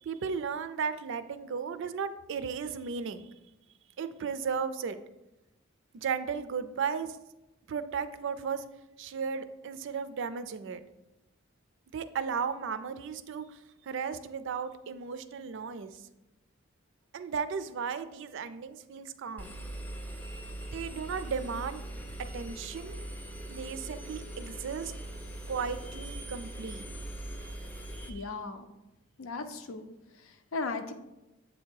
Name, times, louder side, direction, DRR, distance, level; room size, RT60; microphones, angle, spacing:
voice 1, 0.0-3.3 4.0-5.0 5.9-7.1 7.7-8.6 9.0-10.8 11.9-13.6 13.9-16.0 17.1-19.6 20.7-21.8 22.2-23.0 23.5-24.9 25.5-26.8 27.9-28.2, right 6 dB, 65° right, 12 dB, 0.4 m, -35 dB
Engine, 19.4-28.1, right 1 dB, 10° left, 0.5 m, -41 dB
voice 2, 28.1-28.7 29.2-29.9 30.1-30.9, left 3 dB, 90° left, 7 dB, 0.6 m, -37 dB
7.8 x 2.8 x 4.5 m, 0.98 s
head